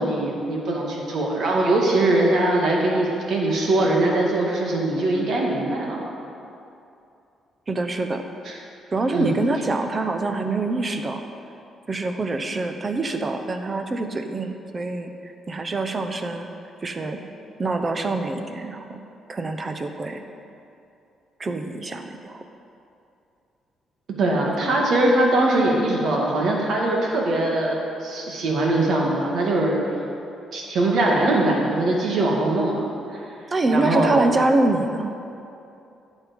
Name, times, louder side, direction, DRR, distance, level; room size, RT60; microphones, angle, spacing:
voice 1, 0.0-6.0 8.5-8.6 9.1-9.4 24.2-29.8 30.5-33.2 33.7-34.4, right 2 dB, 65° right, -1 dB, 2.1 m, -22 dB
voice 2, 7.7-8.2 8.9-11.2 11.9-16.5 16.8-17.2 17.6-19.0 19.3-20.2 21.4-22.4 33.5-35.1, right 2 dB, 30° right, 6 dB, 0.9 m, -25 dB
11.5 x 7.4 x 5.3 m, 2.7 s
cardioid pair, 90°, 0 cm